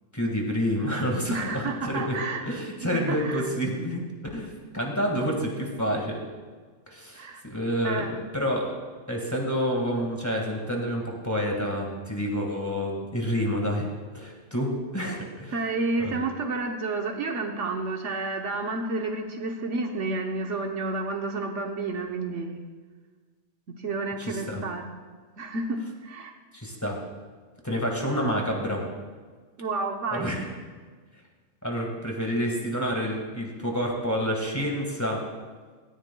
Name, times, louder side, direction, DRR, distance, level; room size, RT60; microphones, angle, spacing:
voice 1, 0.1-4.0 4.3-6.2 6.9-8.8 9.1-13.9 14.1-15.6 16.0-16.1 24.2-24.6 26.5-27.0 27.6-28.9 30.1-30.5 31.6-35.2, equal, 15° left, -1 dB, 1.7 m, -28 dB
voice 2, 1.3-2.5 3.1-3.5 7.1-7.4 7.8-8.2 15.5-22.7 23.8-24.9 25.4-26.3 29.6-30.3, right 3 dB, 65° right, 3 dB, 1.2 m, -30 dB
17.5 x 13.5 x 2.3 m, 1.5 s
omnidirectional pair, 1.3 m